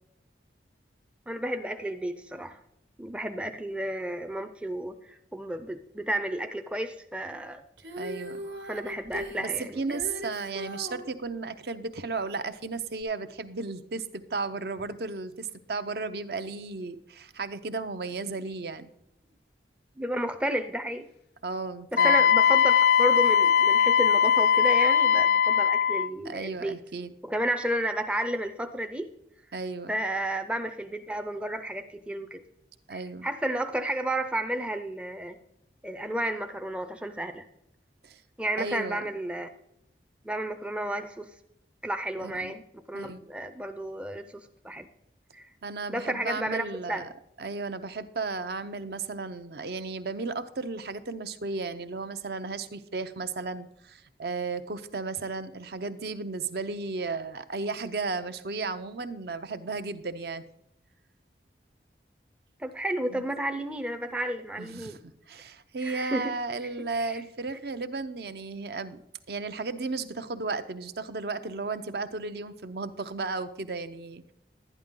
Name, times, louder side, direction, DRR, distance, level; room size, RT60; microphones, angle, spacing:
voice 1, 1.3-2.6 3.0-7.6 8.7-9.8 20.0-21.1 21.9-26.8 27.2-29.1 29.9-32.4 32.9-35.4 35.8-37.5 38.4-39.5 40.2-41.3 41.8-44.9 45.3-45.5 45.9-47.1 62.6-65.0 65.8-66.3 67.0-67.2, right 1 dB, 5° right, 7 dB, 0.4 m, -32 dB
Female singing, 7.8-11.1 13.0-13.1, equal, 80° right, 1.4 m, -39 dB
voice 2, 8.0-8.5 9.4-18.9 21.4-22.2 26.2-27.1 29.5-30.0 32.9-33.3 38.0-38.2 38.6-39.1 42.2-42.6 42.9-43.2 45.6-47.1 47.4-60.4 63.1-63.2 64.6-65.0 65.3-69.0 69.3-74.3, right 3 dB, 60° right, 11 dB, 0.6 m, -34 dB
Wind instrument woodwind instrument, 22.0-26.1, left 7 dB, 60° left, 0.5 m, -20 dB
11.5 x 10.0 x 3.7 m, 0.81 s
head